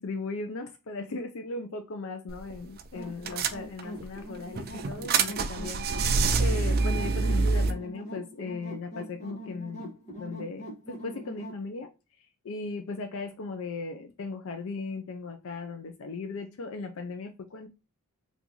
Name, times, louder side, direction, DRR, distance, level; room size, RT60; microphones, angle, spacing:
voice 1, 0.0-6.1 6.4-11.9 12.4-17.7, left 3 dB, 60° left, 0.5 m, -37 dB
sound 1, 2.3-2.5 2.8-2.9 3.3-4.0 4.5-7.7, right 4 dB, 45° right, 0.4 m, -26 dB
sound 2, 2.9-11.6, equal, 30° left, 1.1 m, -42 dB
3.8 x 2.5 x 2.8 m
head